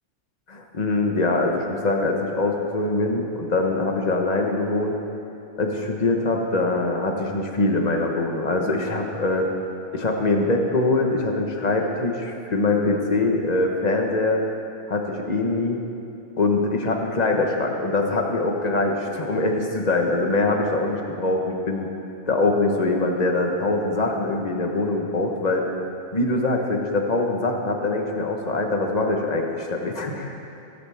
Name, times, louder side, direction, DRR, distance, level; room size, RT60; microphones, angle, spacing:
voice 1, 0.5-5.0 5.6-9.5 9.9-14.4 14.9-15.8 16.4-21.9 22.3-25.6 26.1-30.3, left 2 dB, 35° left, 2 dB, 1.3 m, -23 dB
22.0 x 10.5 x 3.6 m, 2.8 s
omnidirectional pair, 1.3 m